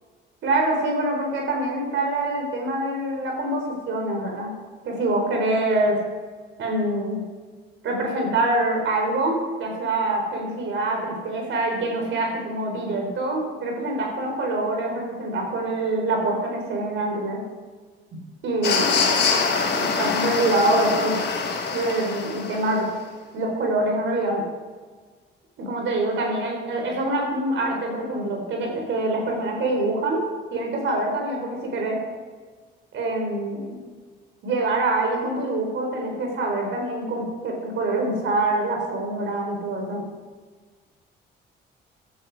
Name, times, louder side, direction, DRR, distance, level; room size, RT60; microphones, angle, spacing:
voice 1, 0.4-4.5 4.8-6.0 6.6-7.2 7.8-17.4 18.1-19.0 19.7-21.2 21.7-22.9 23.3-24.4 25.6-30.3 30.5-32.0 32.9-33.8 34.4-40.0, right 2 dB, 75° right, 1 dB, 4.2 m, -25 dB
sound 1, 18.6-22.8, left 5 dB, 60° left, 3.3 m, -24 dB
14.5 x 11.5 x 4.8 m, 1.5 s
cardioid pair, 90°, 20 cm